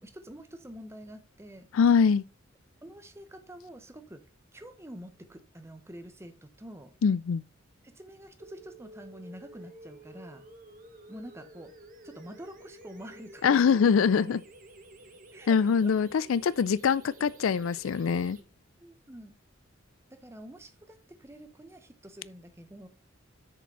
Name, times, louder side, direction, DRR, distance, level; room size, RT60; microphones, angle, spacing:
voice 1, 0.0-1.7 2.8-4.2 4.5-6.9 7.8-10.4 11.1-11.7 12.0-13.8 14.3-14.4 15.3-16.0 18.8-19.3 20.1-22.9, equal, 15° right, 1.0 m, -47 dB
voice 2, 1.7-2.2 7.0-7.4 13.4-14.4 15.5-18.4, left 6 dB, 80° left, 0.4 m, -23 dB
sound 1, 8.4-18.4, right 1 dB, 40° right, 1.3 m, -52 dB
6.8 x 5.2 x 5.4 m
head